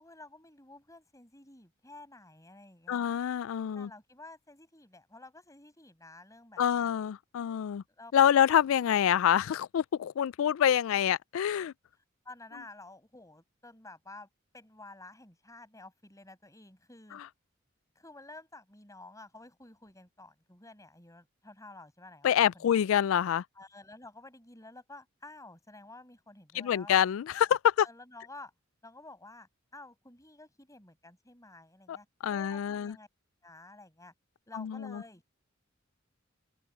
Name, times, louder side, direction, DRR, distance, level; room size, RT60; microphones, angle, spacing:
voice 1, 0.0-3.1 3.7-6.9 8.0-8.1 12.3-14.3 14.5-17.2 18.0-22.3 22.5-22.8 23.5-27.0 27.8-28.5 28.8-33.1 33.4-34.1 34.5-35.2, left 2 dB, 15° left, 7.2 m, -51 dB
voice 2, 2.9-3.9 6.6-7.8 8.1-11.7 22.2-23.4 26.6-27.9 31.9-32.0 32.2-33.0 34.5-35.0, left 9 dB, 75° left, 0.3 m, -26 dB
open air
head